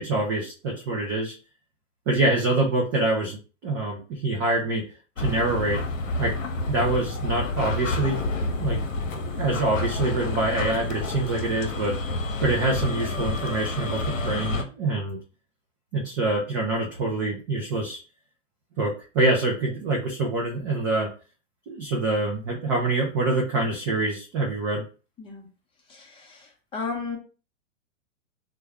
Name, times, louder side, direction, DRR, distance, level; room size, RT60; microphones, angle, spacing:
voice 1, 0.0-1.4 2.1-4.8 5.2-5.9 6.2-6.4 6.7-8.8 9.2-12.0 12.4-15.2 15.9-18.0 18.8-21.1 21.7-24.8, right 2 dB, 20° right, -1 dB, 0.3 m, -25 dB
sound 1, 5.2-14.6, left 2 dB, 75° left, 0.8 m, -29 dB
voice 2, 25.2-25.5 25.9-27.2, left 4 dB, 15° left, 0 dB, 0.7 m, -34 dB
3.3 x 2.2 x 3.4 m, 0.35 s
hypercardioid pair, 130°, 38 cm